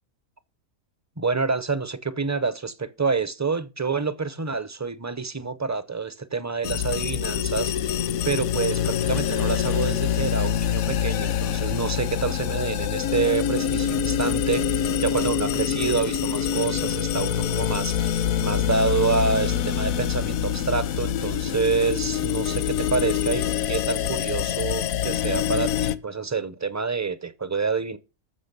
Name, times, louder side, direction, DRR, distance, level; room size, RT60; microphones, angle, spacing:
voice 1, 1.2-28.0, right 4 dB, 20° right, 0.4 m, -27 dB
sound 1, 6.6-25.9, left 9 dB, 80° left, 1.2 m, -25 dB
14.0 x 5.9 x 6.8 m
omnidirectional pair, 1.4 m